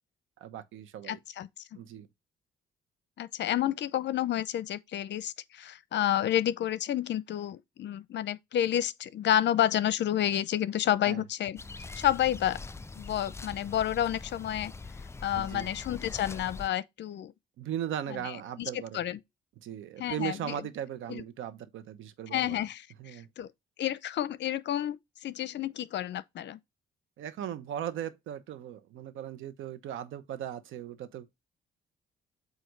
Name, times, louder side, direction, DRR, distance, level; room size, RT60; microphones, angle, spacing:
voice 1, 0.4-1.2 1.8-2.1 11.0-11.2 15.3-15.7 17.6-19.0 19.6-22.7 23.0-23.3 27.2-31.3, right 10 dB, 85° right, 1.0 m, -38 dB
voice 2, 1.1-1.5 3.2-11.6 12.0-12.6 13.0-14.7 15.2-17.3 18.6-19.2 20.0-20.5 21.1-21.2 22.3-22.8 23.1-23.5 23.8-25.0 25.2-26.6, left 11 dB, 65° left, 0.7 m, -30 dB
sound 1, 11.6-16.7, left 3 dB, 15° left, 0.4 m, -43 dB
8.0 x 2.7 x 5.3 m
cardioid pair, 90°, 20 cm